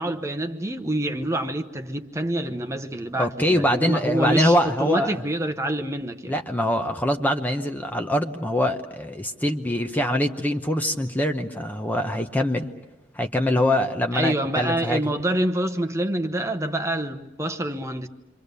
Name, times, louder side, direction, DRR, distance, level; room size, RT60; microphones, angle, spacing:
voice 1, 0.0-4.5 4.8-6.3 14.1-18.1, right 1 dB, 15° right, 1.0 m, -26 dB
voice 2, 3.2-5.2 6.3-12.7 13.1-15.0, left 1 dB, 10° left, 0.9 m, -23 dB
28.5 x 25.0 x 6.8 m
head